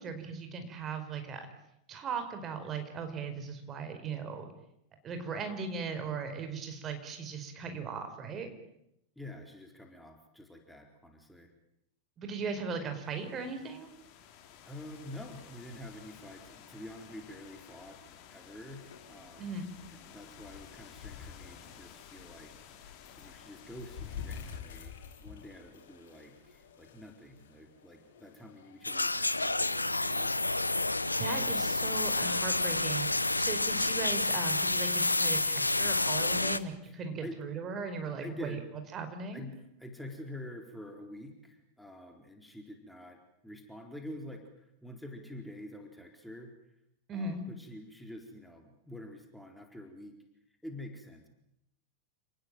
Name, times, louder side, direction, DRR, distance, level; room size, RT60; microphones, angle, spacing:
voice 1, 0.0-1.5 1.9-4.5 5.0-8.5 12.2-13.9 19.4-19.7 31.1-38.6 38.9-39.5 47.1-47.4, right 4 dB, 25° right, 7 dB, 4.9 m, -38 dB
voice 2, 9.2-11.5 14.7-18.0 18.3-22.9 23.2-30.3 36.8-37.4 38.2-38.7 39.3-46.5 47.1-50.2 50.5-51.3, left 1 dB, ahead, 3 dB, 4.3 m, -47 dB
sound 1, 12.9-24.6, left 8 dB, 40° left, 4.1 m, -54 dB
sound 2, 18.7-31.5, left 7 dB, 55° left, 5.7 m, -50 dB
sound 3, 28.8-36.6, left 2 dB, 85° left, 1.1 m, -29 dB
30.0 x 19.5 x 9.1 m, 0.80 s
figure-of-eight pair, 90°, 0 cm